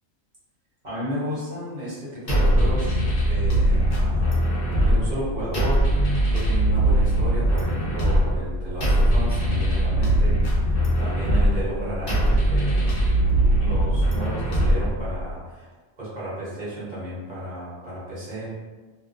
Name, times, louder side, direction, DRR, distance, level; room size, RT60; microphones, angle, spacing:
voice 1, 0.8-13.2 13.6-15.7 16.0-18.6, equal, 40° right, -9 dB, 0.9 m, -33 dB
sound 1, 2.3-15.3, right 1 dB, 55° left, 0.5 m, -21 dB
2.3 x 2.3 x 2.5 m, 1.3 s
omnidirectional pair, 1.4 m